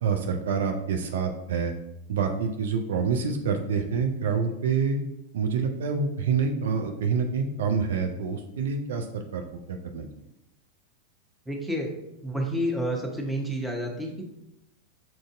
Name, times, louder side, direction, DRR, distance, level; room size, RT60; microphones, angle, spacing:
voice 1, 0.0-1.7 2.1-5.0 5.3-9.4 9.7-10.1, right 5 dB, 60° right, 4 dB, 0.4 m, -27 dB
voice 2, 11.5-11.9 12.2-14.2, equal, 5° right, -1 dB, 0.7 m, -29 dB
5.9 x 2.5 x 2.4 m, 0.85 s
figure-of-eight pair, 90°, 0 cm